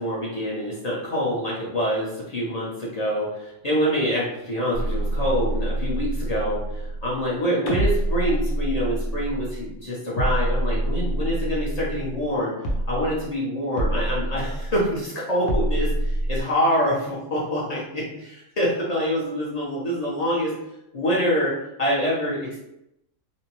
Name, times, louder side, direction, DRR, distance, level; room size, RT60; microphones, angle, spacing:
voice 1, 0.0-12.6 12.9-20.5 20.9-22.6, equal, 40° left, -6 dB, 0.6 m, -26 dB
sound 1, 4.7-7.3 7.7-9.8 10.2-12.4 12.6-13.3 13.8-15.0 15.5-16.4, right 1 dB, 75° left, 0.9 m, -26 dB
2.6 x 2.0 x 2.9 m, 0.85 s
omnidirectional pair, 1.3 m